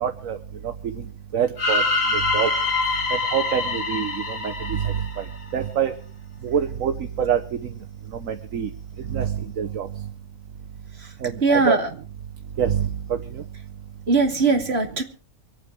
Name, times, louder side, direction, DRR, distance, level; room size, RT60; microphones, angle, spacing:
voice 1, 0.0-0.4 1.3-1.8 2.3-2.5 3.3-4.1 4.7-4.9 5.5-5.9 6.4-6.9 7.2-7.4 8.2-8.7 9.1-9.9 11.2-11.8 12.6-12.9, right 8 dB, 65° right, 6 dB, 1.4 m, -24 dB
sound 1, 1.6-5.6, left 3 dB, 60° left, 3.1 m, -25 dB
voice 2, 11.4-11.9 14.1-15.0, right 3 dB, 45° right, 3 dB, 2.7 m, -20 dB
25.0 x 8.9 x 4.7 m, 0.39 s
omnidirectional pair, 1.5 m